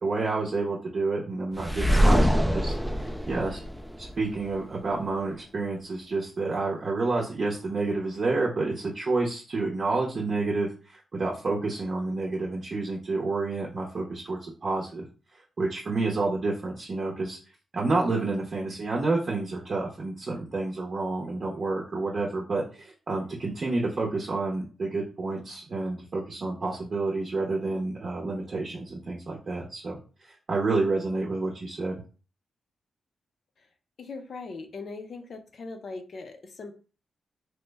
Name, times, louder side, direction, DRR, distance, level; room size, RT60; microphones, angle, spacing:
voice 1, 0.0-3.6 4.0-15.1 15.6-17.4 17.7-32.0, right 3 dB, 45° right, -2 dB, 0.6 m, -29 dB
sound 1, 1.6-4.5, equal, ahead, 0.3 m, -24 dB
voice 2, 34.0-36.7, left 3 dB, 60° left, 5 dB, 0.5 m, -40 dB
3.0 x 2.1 x 3.3 m, 0.37 s
cardioid pair, 95°, 0 cm